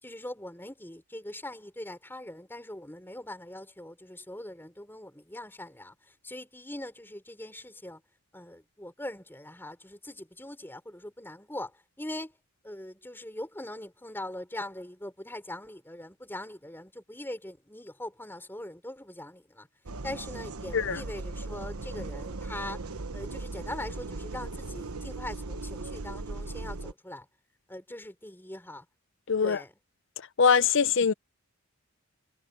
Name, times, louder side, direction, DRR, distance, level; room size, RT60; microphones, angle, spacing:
voice 1, 0.0-8.0 8.3-12.3 12.6-19.7 20.0-22.8 23.1-27.3 27.7-28.8 29.4-29.7, left 1 dB, 10° left, 5.1 m, -41 dB
sound 1, 19.9-26.9, right 3 dB, 80° right, 1.1 m, -38 dB
voice 2, 29.3-29.6 30.4-31.1, left 6 dB, 55° left, 0.7 m, -22 dB
head